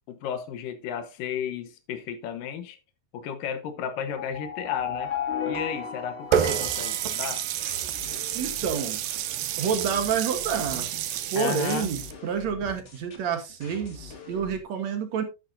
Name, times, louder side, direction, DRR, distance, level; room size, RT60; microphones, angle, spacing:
voice 1, 0.1-2.8 3.1-5.1 5.5-7.4 11.3-11.9, left 8 dB, 80° left, 2.7 m, -33 dB
sound 1, 4.1-8.1, left 6 dB, 35° left, 1.7 m, -34 dB
Water tap faucet, 6.3-12.1, right 10 dB, 85° right, 2.7 m, -29 dB
sound 2, 6.6-14.6, left 3 dB, 55° left, 0.7 m, -45 dB
voice 2, 8.4-9.0 9.6-10.8 11.3-15.2, right 7 dB, 60° right, 2.2 m, -28 dB
10.5 x 9.8 x 2.6 m
omnidirectional pair, 3.9 m